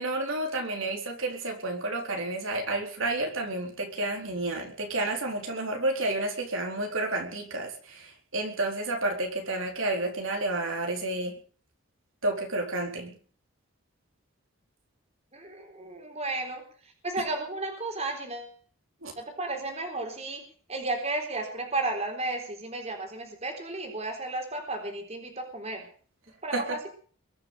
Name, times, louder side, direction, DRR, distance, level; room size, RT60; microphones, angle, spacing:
voice 1, 0.0-11.4 12.2-13.1 19.0-19.1 26.5-26.8, right 2 dB, 75° right, 2 dB, 4.2 m, -30 dB
voice 2, 15.3-18.5 19.2-20.4 20.7-25.9 26.4-26.9, right 2 dB, 30° right, 3 dB, 3.9 m, -33 dB
22.0 x 7.7 x 8.2 m, 0.43 s
head